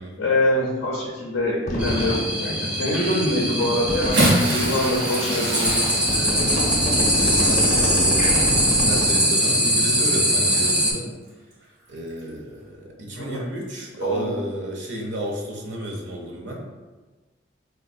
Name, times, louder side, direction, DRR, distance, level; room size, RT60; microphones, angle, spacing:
voice 1, 0.2-6.2 13.1-13.5 14.0-14.3, left 1 dB, 85° left, -4 dB, 0.6 m, -25 dB
sound 1, 1.7-2.2 2.7-2.8 3.6-4.3 5.0-5.1 5.7-9.2, equal, 40° left, 0.6 m, -26 dB
sound 2, 1.8-10.9, equal, 5° right, 0.5 m, -22 dB
Bathtub (filling or washing) / Splash splatter, 3.9-9.6 10.5-10.7 12.1-12.2, right 1 dB, 85° right, 0.8 m, -27 dB
voice 2, 6.1-11.1 11.9-16.6, equal, 65° right, -1 dB, 0.5 m, -32 dB
3.9 x 2.1 x 2.5 m, 1.3 s
head